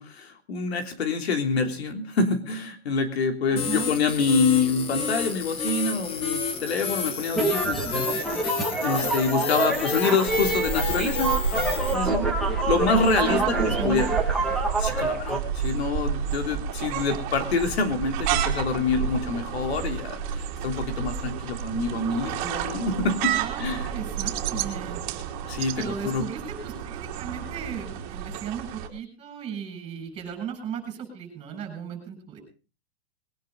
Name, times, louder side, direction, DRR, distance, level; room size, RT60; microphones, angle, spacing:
voice 1, 0.0-11.4 11.9-12.3 12.7-13.6 13.8-14.1 14.8-23.9 25.5-26.2, left 4 dB, 85° left, 5 dB, 3.4 m, -26 dB
voice 2, 3.5-3.9 12.7-14.1 23.1-25.0 25.8-32.4, right 8 dB, 15° right, 5 dB, 7.6 m, -35 dB
sound 1, 3.6-11.9, left 5 dB, 15° left, 1.5 m, -30 dB
sound 2, 7.3-15.4, right 3 dB, ahead, 2.8 m, -27 dB
sound 3, 10.3-28.9, right 7 dB, 35° right, 3.6 m, -30 dB
22.0 x 10.5 x 5.4 m, 0.36 s
supercardioid pair, 165°, 31 cm